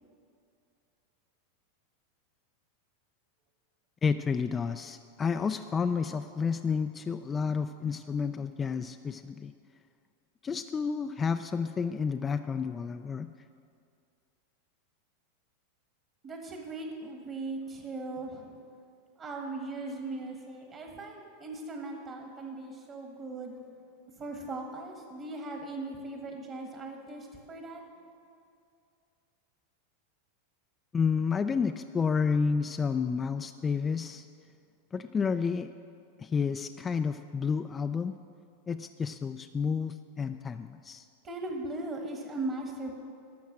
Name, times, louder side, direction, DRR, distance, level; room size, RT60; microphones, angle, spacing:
voice 1, 4.0-9.5 10.4-13.3 30.9-34.3 34.9-35.7 36.2-38.1 38.7-41.1, left 5 dB, 20° left, 8 dB, 0.3 m, -30 dB
voice 2, 16.2-18.5 19.2-23.5 24.2-27.8 41.2-42.9, right 2 dB, 35° right, 2 dB, 1.5 m, -38 dB
12.0 x 6.3 x 7.4 m, 2.4 s
hypercardioid pair, 105°, 0 cm